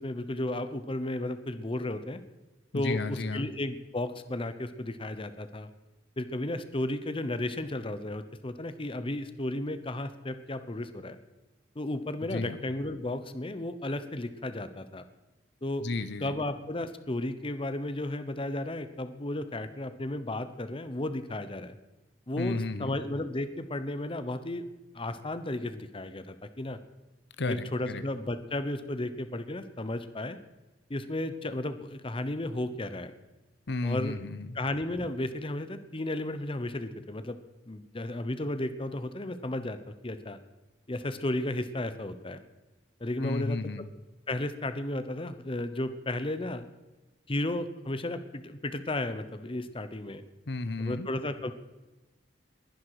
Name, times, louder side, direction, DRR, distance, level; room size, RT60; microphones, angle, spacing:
voice 1, 0.0-2.2 2.7-5.7 6.2-11.2 11.8-15.0 15.6-15.9 16.2-21.7 22.3-24.6 24.9-26.8 27.5-30.4 30.9-33.1 33.8-34.2 34.5-37.4 37.7-40.4 40.9-42.4 43.0-43.9 44.3-46.7 47.3-50.2 50.8-51.5, left 1 dB, 30° left, 11 dB, 0.9 m, -34 dB
voice 2, 2.7-3.5 12.3-12.6 15.8-16.3 22.4-22.9 27.4-28.0 33.7-34.6 43.2-43.9 50.5-51.1, left 2 dB, 70° left, 12 dB, 0.8 m, -33 dB
21.0 x 10.5 x 4.9 m, 1.1 s
head